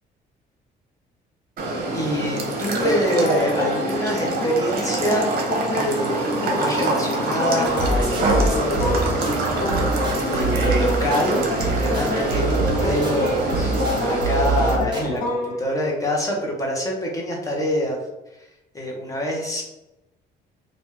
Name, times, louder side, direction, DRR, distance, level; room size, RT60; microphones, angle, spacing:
sound 1, 1.6-14.8, right 2 dB, 60° right, 0.8 m, -25 dB
voice 1, 1.9-5.3 5.7-6.2 6.5-9.2 10.2-18.0 18.7-19.6, left 1 dB, 20° left, -1 dB, 0.9 m, -25 dB
sound 2, 2.8-15.6, left 2 dB, 50° left, 0.9 m, -29 dB
sound 3, 7.6-15.1, right 3 dB, 25° right, 1.0 m, -26 dB
2.9 x 2.5 x 3.7 m, 0.93 s
cardioid pair, 120°, 18 cm